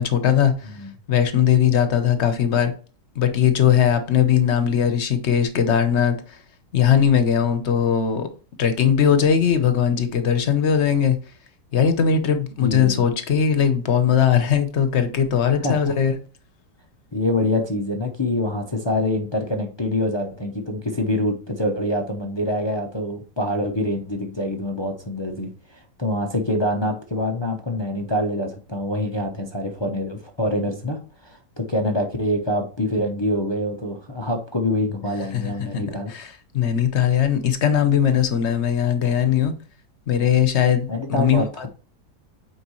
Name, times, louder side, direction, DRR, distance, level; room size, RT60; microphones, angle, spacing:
voice 1, 0.0-0.5 1.1-2.7 3.1-6.2 6.7-8.3 8.6-11.2 11.7-16.1 35.3-35.8 36.1-36.3 36.5-39.5 40.1-41.7, left 8 dB, 50° left, 1.0 m, -19 dB
voice 2, 12.6-13.1 15.4-15.9 17.1-36.1 40.9-41.7, left 1 dB, 30° left, 0.4 m, -25 dB
8.5 x 4.7 x 3.1 m
omnidirectional pair, 1.8 m